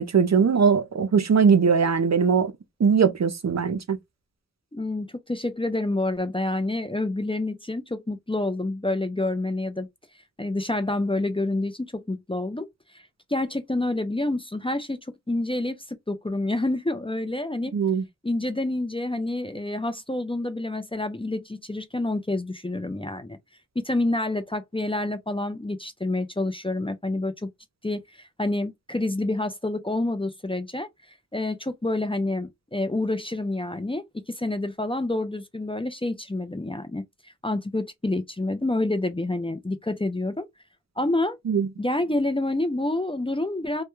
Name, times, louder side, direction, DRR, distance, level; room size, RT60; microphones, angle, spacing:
voice 1, 0.0-2.5 2.8-4.0 17.7-18.0 41.5-41.7, right 6 dB, 55° right, 0.5 m, -20 dB
voice 2, 4.7-9.9 10.4-12.7 12.9-13.0 13.3-15.0 15.3-15.8 16.1-17.7 18.2-23.4 23.8-27.5 27.8-28.0 28.4-30.9 31.3-34.0 34.4-37.0 37.4-40.5 41.0-41.4 41.8-43.8, left 2 dB, 15° left, 0.4 m, -28 dB
2.2 x 2.2 x 3.0 m
wide cardioid pair, 40°, 34 cm